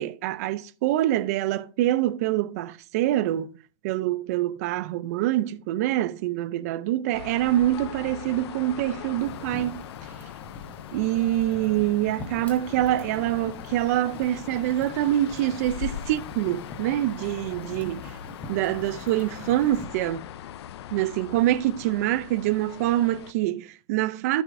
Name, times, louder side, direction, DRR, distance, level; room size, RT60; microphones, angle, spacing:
voice 1, 0.0-3.6 3.8-9.8 10.9-18.1 18.5-20.3 20.9-24.4, right 14 dB, 30° right, 0.4 m, -25 dB
sound 1, 7.1-23.3, left 11 dB, 55° left, 0.4 m, -40 dB
sound 2, 9.2-19.9, left 2 dB, 10° left, 0.7 m, -44 dB
13.0 x 4.8 x 2.5 m
supercardioid pair, 165°, 16 cm